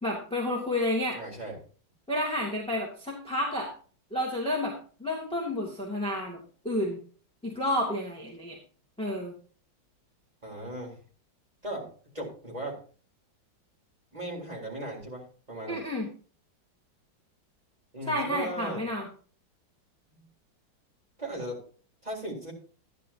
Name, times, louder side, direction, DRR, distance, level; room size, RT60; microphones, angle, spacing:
voice 1, 0.0-1.2 2.1-3.7 4.1-4.7 5.0-6.4 6.6-7.0 7.4-8.6 9.0-9.3 15.7-16.1 18.1-19.1, left 1 dB, 5° left, -4 dB, 2.3 m, -30 dB
voice 2, 1.1-1.6 10.4-11.0 11.6-11.9 12.1-12.8 14.1-15.8 17.9-18.8 21.2-21.6 22.0-22.5, right 1 dB, 20° right, -3 dB, 4.0 m, -37 dB
13.5 x 10.5 x 2.9 m, 0.40 s
omnidirectional pair, 2.0 m